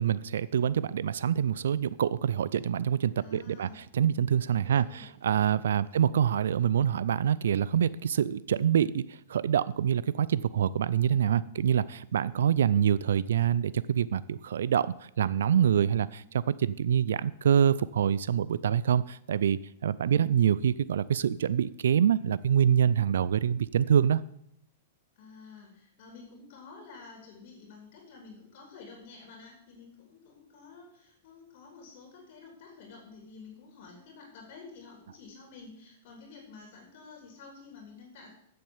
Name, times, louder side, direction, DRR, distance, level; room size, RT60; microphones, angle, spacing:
voice 1, 0.0-16.2 16.6-24.2, right 9 dB, 85° right, 19 dB, 0.3 m, -26 dB
voice 2, 3.2-3.9 4.5-5.1 5.8-6.0 20.0-20.2 25.1-38.3, left 4 dB, 50° left, 0 dB, 3.4 m, -50 dB
7.7 x 7.7 x 7.2 m, 0.73 s
hypercardioid pair, 140°, 0 cm